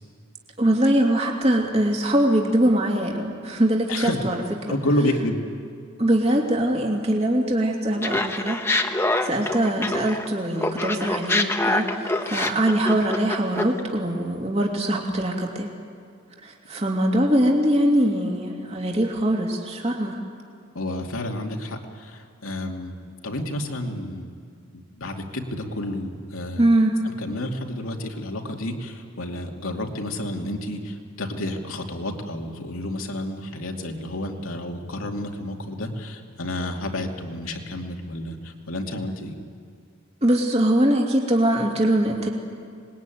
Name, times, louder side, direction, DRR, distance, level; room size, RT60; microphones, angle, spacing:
voice 1, 0.6-4.4 4.7-4.8 6.0-8.6 9.2-15.7 16.4-20.2 26.6-26.9 40.2-42.3, right 1 dB, 30° right, 0 dB, 2.8 m, -22 dB
voice 2, 4.7-5.4 20.7-24.3 24.7-26.6 27.0-39.4, left 1 dB, 85° left, 2 dB, 2.6 m, -30 dB
Laughter, 8.0-10.3 10.6-13.8, left 2 dB, 10° left, 1.2 m, -25 dB
25.5 x 21.0 x 9.3 m, 2.2 s
head